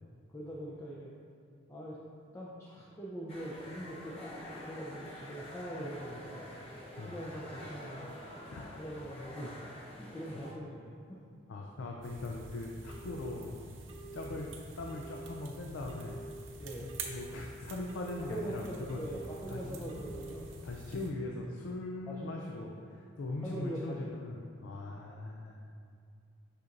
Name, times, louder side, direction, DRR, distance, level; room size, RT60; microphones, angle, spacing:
voice 1, 0.3-1.1 1.7-2.0 2.3-6.5 7.1-8.2 8.8-11.2 14.3-14.4 16.6-16.9 18.3-20.5 22.1-22.7 23.4-24.1 24.4-24.6, equal, 15° left, -6 dB, 0.5 m, -42 dB
sound 1, 3.3-10.5, left 1 dB, 30° left, 0.8 m, -47 dB
voice 2, 11.5-13.6 14.1-16.2 16.8-19.0 19.5-19.8 20.6-25.6, left 2 dB, 80° left, 0 dB, 0.5 m, -40 dB
sound 2, 12.0-21.1, right 3 dB, 75° right, 0.7 m, -47 dB
Telephone, 12.9-13.4 13.9-14.4 14.9-15.4 15.9-16.4 16.9-17.4 17.9-18.4 18.9-19.4 19.9-20.4, right 3 dB, 30° right, 0.7 m, -48 dB
6.6 x 5.8 x 2.5 m, 2.4 s
head